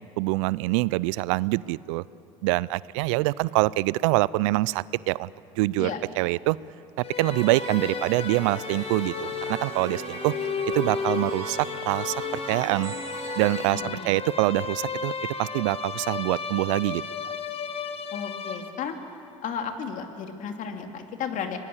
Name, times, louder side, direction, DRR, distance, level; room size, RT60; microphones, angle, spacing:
voice 1, 0.2-2.0 2.4-5.3 5.6-5.9 6.2-6.6 7.0-10.3 10.7-12.9 13.4-15.1 15.4-17.0, right 20 dB, 70° right, 22 dB, 0.4 m, -25 dB
sound 1, 7.0-19.1, left 6 dB, 35° left, 1.4 m, -34 dB
sound 2, 7.2-13.7, right 5 dB, 50° right, 4.9 m, -38 dB
voice 2, 13.7-14.1 18.1-19.0 19.4-21.6, left 7 dB, 50° left, 5 dB, 2.5 m, -33 dB
25.0 x 19.5 x 7.3 m, 2.9 s
hypercardioid pair, 75°, 17 cm